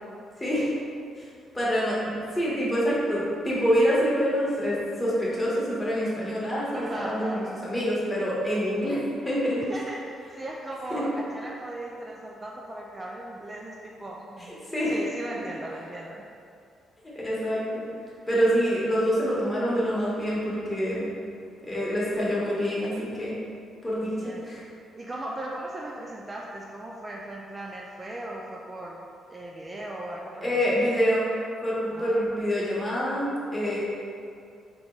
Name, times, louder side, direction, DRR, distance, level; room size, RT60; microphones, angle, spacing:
voice 1, 0.4-0.7 1.2-1.3 1.5-9.0 9.2-9.7 10.9-11.0 14.4-15.0 17.2-17.9 18.3-21.1 21.6-23.4 23.8-24.6 30.4-31.3 31.6-33.8, equal, 20° left, -7 dB, 1.3 m, -26 dB
voice 2, 6.7-7.5 9.7-14.6 14.9-16.2 24.0-24.4 25.0-29.0 29.3-30.9 31.9-32.4, right 1 dB, 20° right, -3 dB, 0.4 m, -37 dB
3.6 x 3.0 x 3.8 m, 2.4 s
cardioid pair, 90°, 0 cm